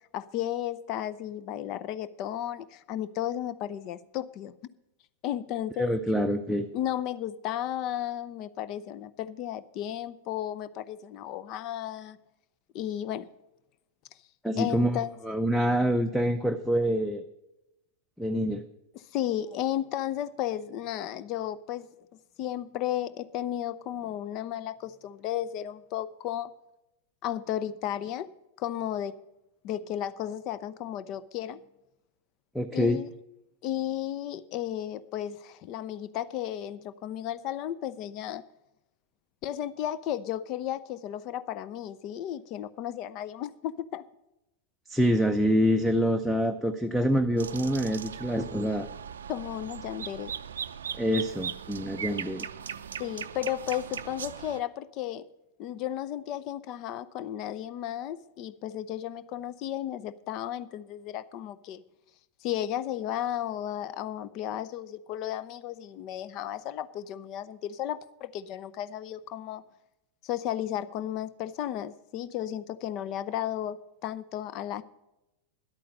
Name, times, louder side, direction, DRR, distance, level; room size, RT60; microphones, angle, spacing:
voice 1, 0.1-4.5 5.2-5.9 6.7-12.2 12.7-13.3 14.6-15.2 19.1-21.9 22.4-26.5 27.2-28.3 28.6-29.2 29.6-31.6 32.7-33.1 33.6-38.4 39.4-44.0 49.3-50.3 53.0-55.3 55.6-61.8 62.4-69.6 70.2-74.8, left 11 dB, 40° left, 16 dB, 0.6 m, -34 dB
voice 2, 5.8-6.7 14.4-17.2 18.2-18.6 32.5-33.0 44.9-48.9 51.0-52.5, equal, ahead, 10 dB, 0.6 m, -26 dB
sound 1, 47.4-54.6, right 8 dB, 65° right, 0.5 m, -39 dB
11.0 x 8.6 x 6.3 m, 0.92 s
figure-of-eight pair, 90°, 0 cm